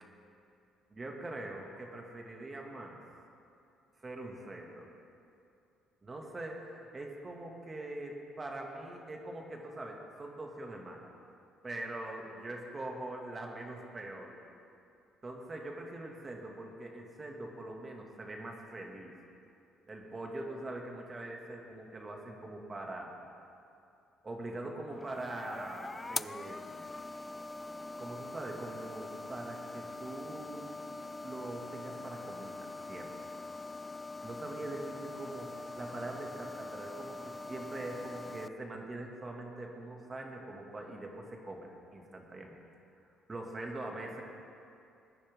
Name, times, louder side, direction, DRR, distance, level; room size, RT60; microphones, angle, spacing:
voice 1, 0.9-3.0 4.0-4.9 6.1-11.1 11.6-14.4 15.2-19.1 19.9-23.3 24.2-26.8 28.0-30.9 31.2-33.3 34.2-42.6 43.3-44.2, right 2 dB, 25° right, 0 dB, 2.2 m, -43 dB
sound 1, 24.9-38.5, left 2 dB, 20° left, 0.4 m, -43 dB
20.0 x 9.7 x 3.7 m, 2.6 s
supercardioid pair, 85°, 0 cm